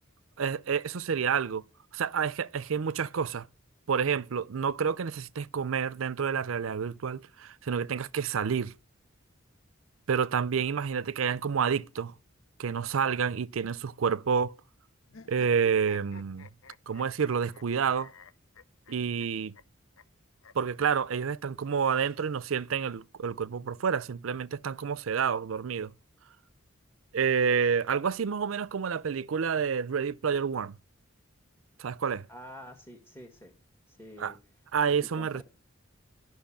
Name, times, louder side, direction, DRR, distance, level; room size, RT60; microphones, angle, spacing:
voice 1, 0.4-1.6 1.9-3.5 3.9-8.7 10.1-12.1 12.6-14.6 15.3-16.5 16.9-18.1 18.9-19.5 20.5-25.9 27.1-30.8 31.8-32.3 34.2-34.3 34.7-35.4, right 6 dB, 80° right, 0.5 m, -29 dB
sound 1, 15.1-17.6 17.9-19.3 19.5-19.6 20.0-20.1 20.4-20.5 21.6-22.6, left 5 dB, 85° left, 0.7 m, -52 dB
voice 2, 32.3-33.5 33.9-34.4 35.1-35.4, equal, 15° left, 1.7 m, -47 dB
13.0 x 6.0 x 8.5 m
head